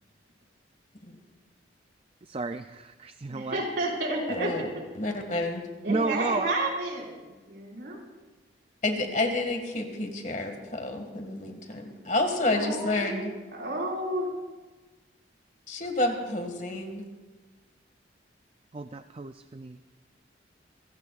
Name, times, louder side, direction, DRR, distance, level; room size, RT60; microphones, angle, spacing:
voice 1, 2.2-3.6 5.9-6.6 18.7-19.8, right 3 dB, 30° right, 9 dB, 0.4 m, -32 dB
voice 2, 3.3-4.5 5.8-8.0 12.4-14.3, right 1 dB, 70° right, -2 dB, 5.2 m, -31 dB
voice 3, 4.3-5.7 8.8-13.3 15.7-17.0, left 2 dB, 40° left, 4 dB, 2.0 m, -29 dB
28.0 x 16.0 x 2.5 m, 1.2 s
head